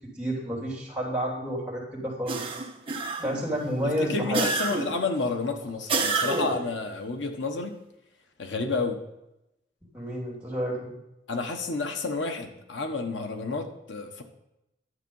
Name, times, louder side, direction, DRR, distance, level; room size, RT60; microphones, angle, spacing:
voice 1, 0.2-2.6 3.2-4.4 9.8-10.9, equal, 5° right, -4 dB, 3.2 m, -30 dB
sound 1, 2.3-3.5 4.3-5.1 5.9-6.7, right 3 dB, 30° right, 1.2 m, -28 dB
voice 2, 4.0-7.8 8.4-9.0 11.3-14.2, left 3 dB, 85° left, 5 dB, 1.2 m, -30 dB
11.5 x 7.4 x 5.4 m, 0.89 s
head